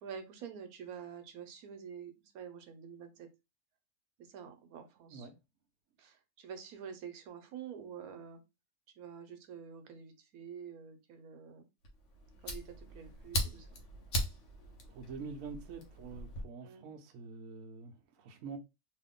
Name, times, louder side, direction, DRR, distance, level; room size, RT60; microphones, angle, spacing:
voice 1, 0.0-3.3 4.2-5.3 6.0-8.4 9.0-11.7 12.4-13.8 16.6-16.9, right 7 dB, 90° right, 1.2 m, -48 dB
voice 2, 5.0-5.3 14.9-18.6, right 5 dB, 70° right, 1.0 m, -46 dB
Fire, 11.8-16.4, equal, 60° left, 1.2 m, -39 dB
3.0 x 2.6 x 3.6 m
omnidirectional pair, 1.5 m